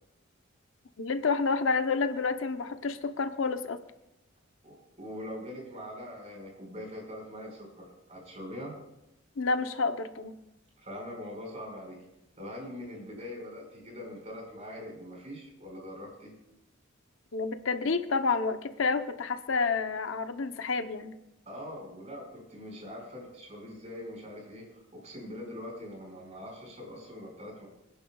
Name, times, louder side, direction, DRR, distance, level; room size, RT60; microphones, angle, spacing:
voice 1, 1.0-3.8 9.4-10.3 17.3-21.1, left 4 dB, 75° left, 9 dB, 0.8 m, -29 dB
voice 2, 4.6-8.7 10.8-12.0 12.4-16.3 21.4-27.7, left 1 dB, 35° right, -1 dB, 5.1 m, -42 dB
26.0 x 10.5 x 2.3 m, 0.90 s
head